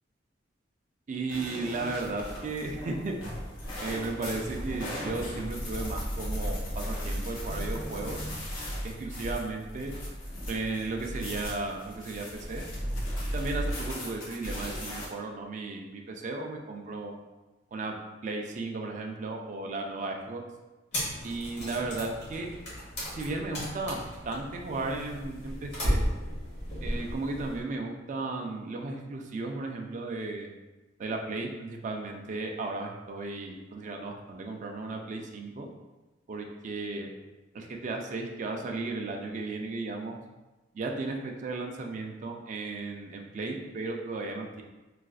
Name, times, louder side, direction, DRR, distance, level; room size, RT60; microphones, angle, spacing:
voice 1, 1.1-3.2 3.8-8.2 8.8-9.9 10.5-12.6 13.3-17.2 17.7-18.0 18.2-20.4 21.2-22.5 23.1-26.0 26.8-30.5 31.0-35.7 36.3-37.1 37.5-40.2 40.7-44.6, right 3 dB, 40° right, 2 dB, 0.3 m, -35 dB
sound 1, 1.3-15.1, equal, 85° left, 0.8 m, -36 dB
sound 2, 20.9-27.6, equal, 60° left, 1.3 m, -34 dB
4.0 x 2.4 x 2.4 m, 1.1 s
head